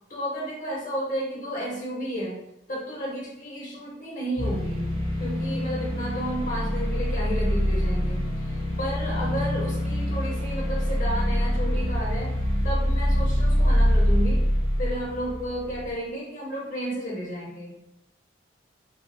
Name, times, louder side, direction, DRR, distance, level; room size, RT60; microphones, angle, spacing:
voice 1, 0.1-2.4 2.7-4.9 5.2-8.2 8.8-12.3 12.6-14.4 14.8-17.8, equal, 40° left, -6 dB, 0.7 m, -32 dB
sound 1, 4.4-15.9, equal, 30° right, 0.7 m, -25 dB
3.6 x 2.1 x 2.5 m, 0.82 s
head